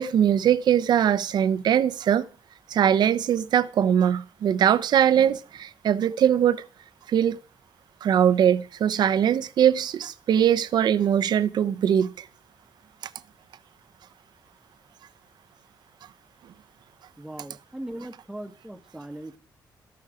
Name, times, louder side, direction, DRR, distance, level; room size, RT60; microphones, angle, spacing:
voice 1, 0.0-2.3 2.7-6.6 7.1-7.4 8.0-12.2, right 9 dB, 70° right, 0.8 m, -21 dB
voice 2, 17.2-19.4, right 1 dB, 5° right, 1.3 m, -39 dB
14.0 x 11.5 x 4.9 m
cardioid pair, 135°, 8 cm